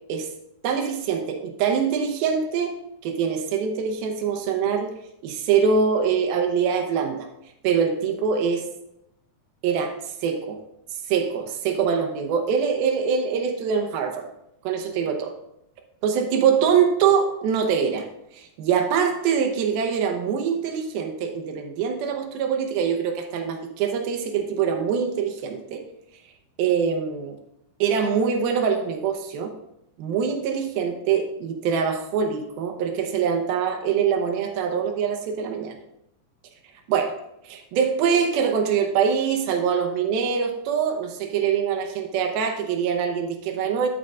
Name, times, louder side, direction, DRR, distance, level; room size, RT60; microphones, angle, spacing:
voice 1, 0.6-2.7 3.0-4.9 5.2-7.3 7.6-8.6 9.6-9.9 10.2-10.6 11.1-14.3 14.6-15.3 16.0-18.1 18.3-25.8 26.6-27.4 27.8-29.5 30.0-35.8 36.9-37.1 37.4-43.9, right 6 dB, 75° right, 4 dB, 2.6 m, -24 dB
11.5 x 7.2 x 2.5 m, 0.80 s
omnidirectional pair, 4.7 m